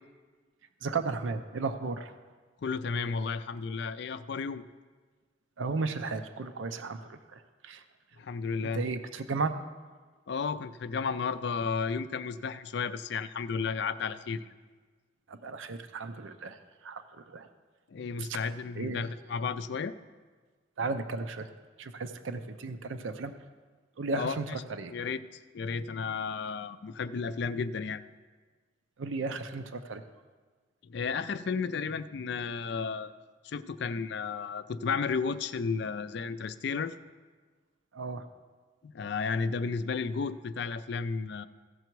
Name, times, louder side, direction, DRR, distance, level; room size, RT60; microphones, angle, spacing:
voice 1, 0.8-2.1 5.6-7.8 8.7-9.5 15.3-17.5 18.2-18.3 18.8-19.1 20.8-21.5 21.8-23.3 24.0-24.9 29.0-30.0 37.9-38.3, right 3 dB, 80° right, 9 dB, 0.6 m, -35 dB
voice 2, 2.6-4.6 8.2-8.8 10.3-14.5 17.9-19.9 24.1-24.4 24.9-28.0 30.8-33.1 33.4-36.9 38.8-41.5, left 5 dB, 60° left, 13 dB, 0.4 m, -33 dB
15.5 x 6.7 x 4.6 m, 1.4 s
head